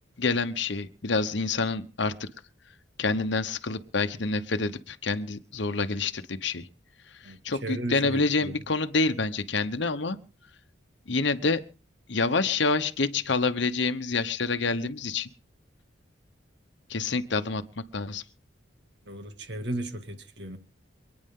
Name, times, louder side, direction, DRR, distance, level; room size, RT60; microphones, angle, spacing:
voice 1, 0.2-2.3 3.0-6.7 7.2-10.2 11.1-11.6 12.1-15.3 16.9-17.6 17.9-18.2, left 3 dB, 65° left, 1.0 m, -27 dB
voice 2, 7.2-8.5 19.1-20.6, right 1 dB, 60° right, 2.2 m, -35 dB
28.0 x 9.7 x 3.7 m
head